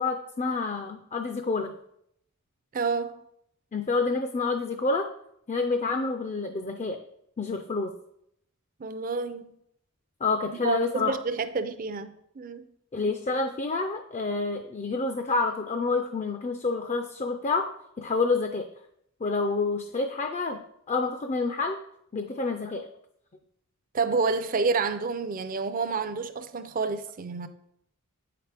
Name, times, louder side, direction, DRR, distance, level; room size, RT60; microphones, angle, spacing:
voice 1, 0.0-1.7 3.7-5.1 5.5-7.0 7.4-7.9 10.2-11.1 12.9-17.7 18.0-18.7 19.2-20.6 20.9-21.8 22.1-22.9, left 3 dB, 30° left, 0.4 m, -28 dB
voice 2, 2.7-3.2 8.8-9.6 10.6-12.7 23.9-27.5, right 4 dB, 40° right, 0.4 m, -29 dB
8.7 x 5.9 x 3.4 m
head